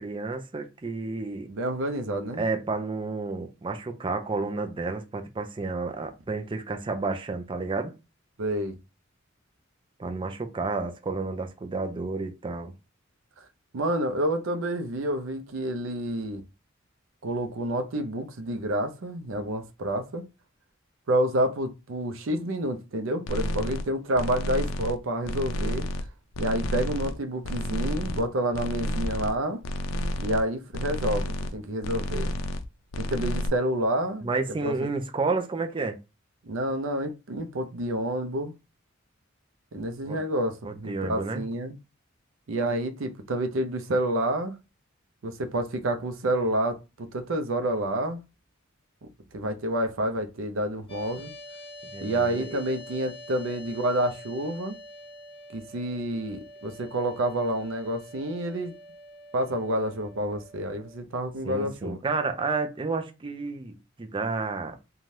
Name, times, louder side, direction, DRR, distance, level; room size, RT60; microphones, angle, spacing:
voice 1, 0.0-1.5 2.4-7.9 10.0-12.7 34.2-36.0 40.0-40.2 40.6-41.4 51.9-52.6 61.4-64.8, right 3 dB, 25° right, 0.4 m, -31 dB
voice 2, 1.5-2.4 8.4-8.8 13.7-16.4 17.2-20.3 21.1-25.9 26.4-29.6 30.2-32.3 33.0-34.3 34.6-34.7 36.4-38.5 39.7-41.8 42.5-44.5 45.2-48.2 49.3-51.3 52.0-54.8 55.5-58.7 59.3-62.0, right 1 dB, 75° right, 0.5 m, -29 dB
sound 1, 23.3-23.8 24.1-25.0 25.2-26.1 26.3-27.2 27.4-28.2 28.5-29.4 29.6-30.4 30.7-31.6 31.8-32.7 32.9-33.5, left 1 dB, 85° left, 0.4 m, -30 dB
sound 2, 50.9-61.0, left 1 dB, 30° left, 0.7 m, -46 dB
2.7 x 2.3 x 3.1 m
head